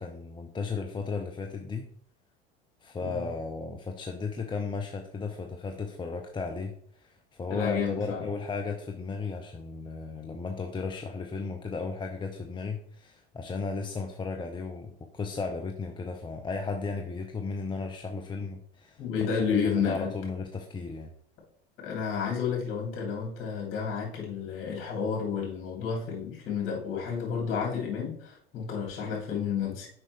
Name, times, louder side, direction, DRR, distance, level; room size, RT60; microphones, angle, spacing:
voice 1, 0.0-1.9 2.8-19.0 19.6-21.1, left 4 dB, 15° left, 4 dB, 0.6 m, -35 dB
voice 2, 7.5-8.2 19.0-20.1 21.8-29.9, left 6 dB, 40° left, -1 dB, 3.0 m, -31 dB
7.4 x 5.3 x 3.2 m, 0.62 s
hypercardioid pair, 85°, 30 cm